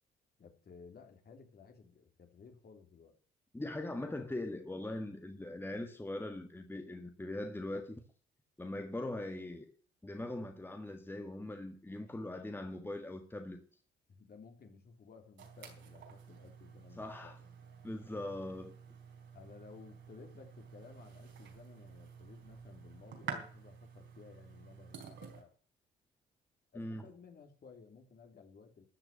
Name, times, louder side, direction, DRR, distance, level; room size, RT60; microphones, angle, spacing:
voice 1, 0.4-3.1 12.0-12.2 12.4-12.7 14.1-17.5 18.2-18.4 19.3-25.5 26.7-28.9, left 5 dB, 50° left, 3.5 m, -56 dB
voice 2, 3.5-8.0 8.6-9.7 10.0-13.6 17.0-17.4 17.8-18.7 26.7-27.0, left 1 dB, 10° left, 1.7 m, -41 dB
sound 1, 15.4-25.4, right 6 dB, 70° right, 3.9 m, -50 dB
13.5 x 6.4 x 8.9 m
cardioid pair, 90°, 20 cm